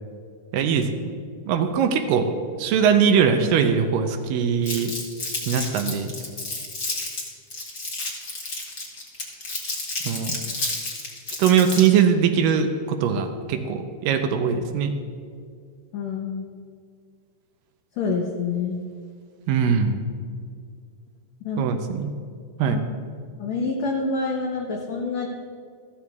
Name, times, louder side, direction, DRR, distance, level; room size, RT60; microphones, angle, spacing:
voice 1, 0.5-0.9 1.5-2.3 2.6-4.9 5.5-6.1 10.0-10.3 11.4-14.9 19.5-20.0 21.6-22.1 22.6-22.8, right 7 dB, 85° right, 6 dB, 2.3 m, -21 dB
Crumpling crinkling, 4.6-12.0, left 2 dB, 45° left, 1.2 m, -31 dB
voice 2, 15.9-16.5 18.0-18.8 21.4-21.6 22.7-22.8 23.4-25.3, left 4 dB, 70° left, -1 dB, 1.7 m, -27 dB
14.0 x 13.0 x 2.4 m, 2.1 s
omnidirectional pair, 4.0 m